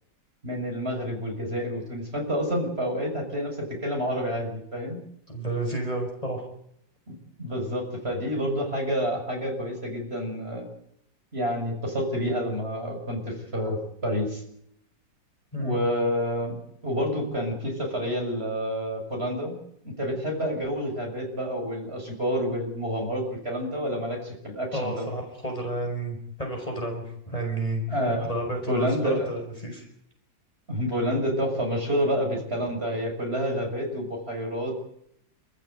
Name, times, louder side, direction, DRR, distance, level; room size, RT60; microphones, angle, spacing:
voice 1, 0.4-5.0 7.1-10.7 11.3-14.4 15.6-16.6 16.8-19.5 19.8-25.1 27.9-28.3 28.7-29.3 30.7-34.7, equal, 30° right, 1 dB, 6.8 m, -28 dB
voice 2, 5.3-6.4 15.5-15.9 24.7-27.8 28.3-29.9, right 1 dB, 20° left, 1 dB, 5.8 m, -31 dB
27.5 x 15.5 x 9.1 m, 0.74 s
omnidirectional pair, 2.0 m